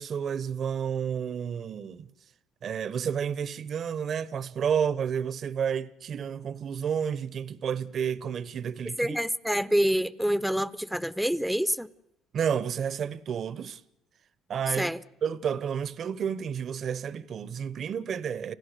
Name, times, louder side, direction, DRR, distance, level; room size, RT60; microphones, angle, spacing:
voice 1, 0.0-2.1 2.6-9.2 12.3-13.8 14.5-14.9 15.2-18.5, right 7 dB, 55° right, 1.0 m, -31 dB
voice 2, 9.0-11.9 14.8-15.0, equal, ahead, 0.9 m, -27 dB
30.0 x 15.5 x 6.8 m
supercardioid pair, 70°, 0 cm